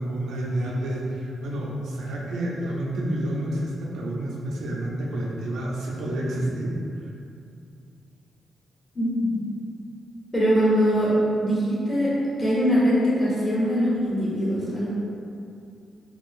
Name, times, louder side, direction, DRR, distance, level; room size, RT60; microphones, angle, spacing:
voice 1, 0.0-6.8, right 1 dB, 85° right, -3 dB, 0.5 m, -29 dB
voice 2, 8.9-9.4 10.3-11.1 11.4-12.1 12.4-14.9, equal, 25° left, -9 dB, 1.1 m, -22 dB
3.7 x 2.5 x 2.5 m, 2.6 s
cardioid pair, 115°, 0 cm